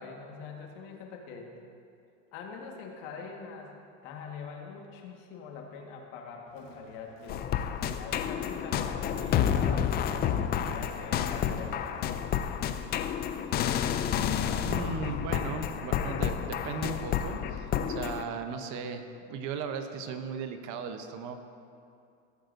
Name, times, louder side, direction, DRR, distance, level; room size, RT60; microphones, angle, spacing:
voice 1, 0.0-1.5 2.3-12.6 14.5-15.9, left 5 dB, 65° left, 1 dB, 1.6 m, -44 dB
Crowd, 6.5-18.2, left 3 dB, 85° left, 1.4 m, -54 dB
sound 1, 7.3-18.2, left 9 dB, 25° left, 0.3 m, -30 dB
voice 2, 14.6-21.4, right 5 dB, 50° right, 7 dB, 0.9 m, -37 dB
16.0 x 7.8 x 2.6 m, 2.5 s
supercardioid pair, 120°, 38 cm